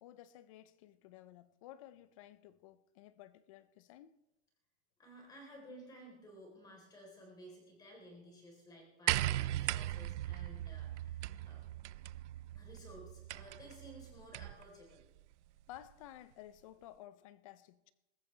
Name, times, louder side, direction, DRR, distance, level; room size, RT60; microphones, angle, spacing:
voice 1, 0.0-4.2 15.7-17.9, left 13 dB, 30° left, 0.4 m, -54 dB
voice 2, 5.0-11.6 12.5-15.0, equal, 10° left, 3.5 m, -55 dB
sound 1, 9.1-14.7 15.8-15.9, right 14 dB, 75° right, 0.5 m, -38 dB
22.0 x 14.0 x 3.2 m
supercardioid pair, 170°, 35 cm